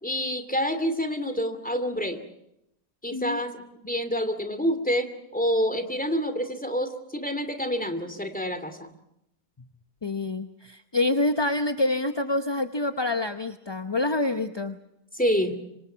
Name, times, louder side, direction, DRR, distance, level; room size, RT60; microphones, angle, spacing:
voice 1, 0.0-2.2 3.0-8.9 15.1-15.6, equal, 5° left, 9 dB, 2.5 m, -27 dB
voice 2, 10.0-14.8, left 2 dB, 25° left, 9 dB, 0.7 m, -27 dB
26.5 x 25.5 x 5.8 m, 0.81 s
omnidirectional pair, 1.6 m